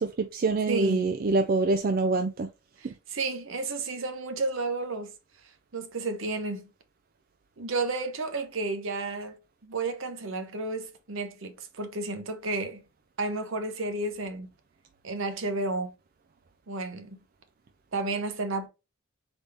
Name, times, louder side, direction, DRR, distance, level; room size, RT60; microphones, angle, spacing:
voice 1, 0.0-2.5, right 3 dB, 45° right, 0.4 m, -25 dB
voice 2, 0.7-1.1 2.8-5.1 5.7-6.7 7.6-9.4 9.6-12.8 13.2-14.5 15.0-15.9 16.7-17.2 17.9-18.7, right 3 dB, 65° right, 0.9 m, -32 dB
4.0 x 3.5 x 3.3 m
head